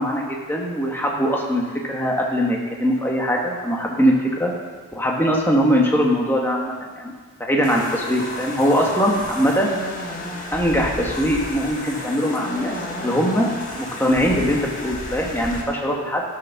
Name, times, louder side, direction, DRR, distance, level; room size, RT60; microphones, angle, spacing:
voice 1, 0.0-4.5 4.9-7.1 7.4-9.7 10.5-13.5 13.8-16.2, equal, 10° left, -1 dB, 1.4 m, -21 dB
sound 1, 7.6-15.6, left 2 dB, 35° left, 1.5 m, -32 dB
13.0 x 6.8 x 5.9 m, 1.4 s
head